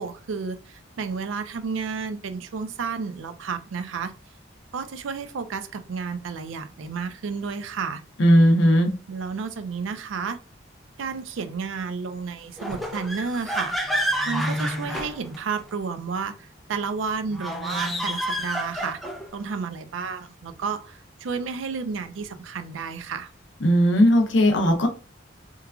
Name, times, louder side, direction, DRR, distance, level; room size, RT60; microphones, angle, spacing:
voice 1, 0.0-4.1 4.7-8.0 9.1-10.4 11.0-13.8 14.3-19.0 19.3-23.3, right 5 dB, 80° right, 0.4 m, -31 dB
voice 2, 8.2-8.9 23.6-24.9, equal, 65° left, 0.6 m, -17 dB
sound 1, 12.6-15.7 17.3-19.3, equal, ahead, 0.3 m, -29 dB
3.1 x 2.3 x 2.3 m
head